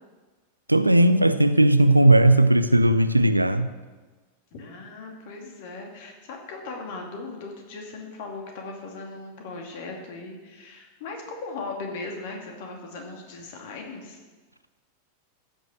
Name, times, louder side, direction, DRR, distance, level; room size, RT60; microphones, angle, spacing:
voice 1, 0.7-3.7, right 1 dB, 85° right, 12 dB, 0.5 m, -17 dB
voice 2, 4.5-14.2, left 3 dB, 50° left, 2 dB, 2.5 m, -38 dB
14.5 x 6.3 x 6.4 m, 1.3 s
figure-of-eight pair, 90°, 0 cm